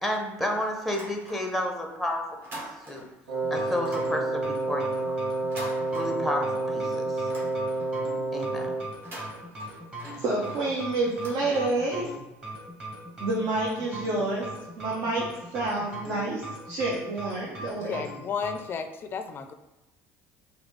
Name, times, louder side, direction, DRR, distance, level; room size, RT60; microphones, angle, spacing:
voice 1, 0.0-2.2 2.5-2.6 2.9-3.1 3.5-5.0 5.9-7.2 8.3-8.7, left 1 dB, ahead, 2 dB, 0.7 m, -31 dB
sound 1, 0.8-1.8 2.1-3.2 3.7-6.6 6.9-8.1 8.9-12.0, right 1 dB, 40° right, 1.3 m, -45 dB
Wind instrument woodwind instrument, 3.3-9.0, right 2 dB, 90° right, 1.1 m, -29 dB
sound 2, 3.4-18.6, right 1 dB, 15° right, 1.3 m, -40 dB
voice 2, 10.2-12.1 13.2-14.5 14.8-15.3 15.5-18.1, right 2 dB, 60° right, -4 dB, 0.8 m, -28 dB
voice 3, 17.9-19.5, left 6 dB, 40° left, 8 dB, 0.4 m, -33 dB
4.0 x 2.7 x 3.2 m, 0.99 s
supercardioid pair, 110°, 6 cm